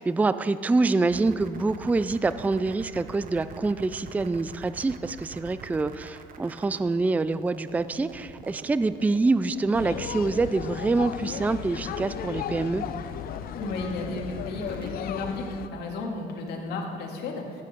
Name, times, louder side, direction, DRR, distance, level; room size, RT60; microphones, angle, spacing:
voice 1, 0.0-12.8, right 3 dB, 10° right, 14 dB, 0.3 m, -26 dB
sound 1, 1.0-14.9, right 4 dB, 55° right, 1.2 m, -46 dB
sound 2, 9.7-15.7, left 9 dB, 60° left, 0.6 m, -35 dB
voice 2, 13.5-17.6, left 2 dB, 75° left, 1 dB, 2.1 m, -33 dB
15.5 x 8.3 x 5.2 m, 2.3 s
cardioid pair, 110°, 17 cm